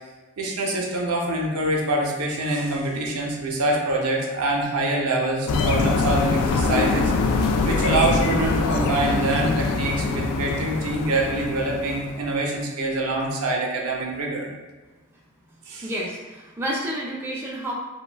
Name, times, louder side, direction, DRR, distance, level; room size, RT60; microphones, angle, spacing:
voice 1, 0.4-7.1 7.6-14.5 15.7-15.9, right 2 dB, 70° right, -1 dB, 0.6 m, -25 dB
sound 1, 5.5-12.2, left 3 dB, 80° left, 0.3 m, -23 dB
voice 2, 15.8-17.7, right 1 dB, 10° right, -5 dB, 0.3 m, -30 dB
2.5 x 2.2 x 3.2 m, 1.2 s
head